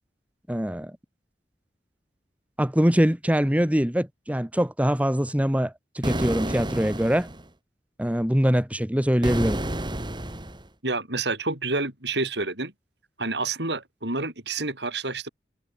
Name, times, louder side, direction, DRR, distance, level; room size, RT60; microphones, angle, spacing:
voice 1, 0.5-0.9 2.6-7.3 8.0-9.6, equal, 10° right, 1.6 m, -23 dB
sound 1, 6.0-7.4 9.2-10.7, right 1 dB, 25° right, 2.9 m, -30 dB
voice 2, 10.8-12.7 13.2-15.3, right 3 dB, 70° right, 5.6 m, -28 dB
head